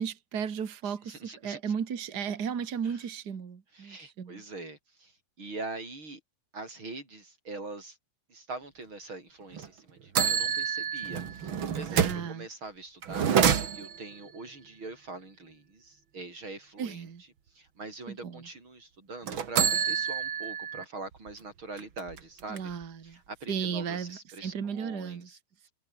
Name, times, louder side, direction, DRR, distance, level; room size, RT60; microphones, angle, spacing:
voice 1, 0.0-1.2 1.4-4.4 11.9-12.5 16.8-17.2 18.2-18.4 22.5-23.2 23.5-25.3, right 7 dB, 85° right, 0.8 m, -34 dB
voice 2, 0.8-1.7 2.8-3.1 3.7-5.1 5.4-6.2 6.5-8.0 8.3-13.3 13.7-17.3 17.5-22.7 23.0-25.4 25.6-25.7, right 3 dB, 25° right, 7.2 m, -43 dB
sound 1, 9.5-9.7 10.1-12.3 13.0-14.1 19.2-20.8 21.3-21.4 21.8-22.8, right 8 dB, 60° right, 1.3 m, -28 dB
omnidirectional pair, 4.9 m